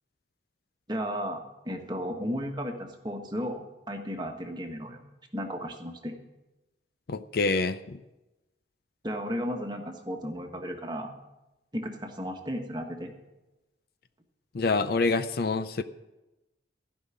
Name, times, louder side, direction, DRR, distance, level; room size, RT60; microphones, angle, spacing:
voice 1, 0.9-5.0 5.3-6.1 9.0-11.1 11.7-13.1, equal, 25° right, 3 dB, 1.3 m, -34 dB
voice 2, 7.1-8.0 14.5-15.8, left 3 dB, 55° left, 11 dB, 0.5 m, -26 dB
15.5 x 5.5 x 9.7 m, 1.0 s
head